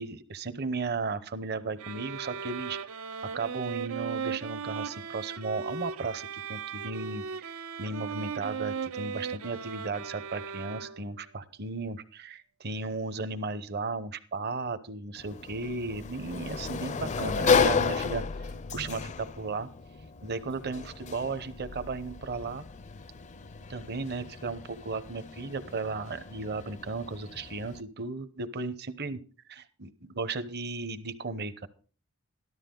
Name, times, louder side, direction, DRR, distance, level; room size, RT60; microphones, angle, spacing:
voice 1, 0.0-2.8 3.3-7.5 7.8-18.2 18.7-19.7 20.2-22.6 23.7-29.2 29.5-31.7, right 3 dB, 50° right, 12 dB, 0.9 m, -35 dB
sound 1, 1.8-11.2, right 6 dB, 85° right, 0.6 m, -37 dB
Sliding door, 15.2-27.8, left 5 dB, 35° left, 0.5 m, -33 dB
13.5 x 12.5 x 3.8 m, 0.39 s
head